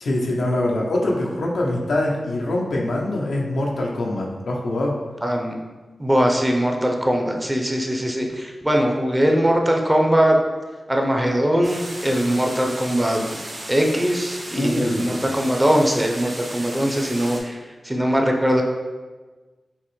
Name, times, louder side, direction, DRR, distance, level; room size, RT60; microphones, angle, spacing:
voice 1, 0.0-5.0 14.5-15.1, left 1 dB, 85° left, -2 dB, 0.6 m, -24 dB
voice 2, 5.2-5.5 6.0-10.4 10.9-13.4 13.7-18.6, equal, 15° right, 1 dB, 0.6 m, -21 dB
sound 1, 11.6-17.4, right 1 dB, 55° right, 0.8 m, -35 dB
5.5 x 2.0 x 3.1 m, 1.3 s
cardioid pair, 55°, 0 cm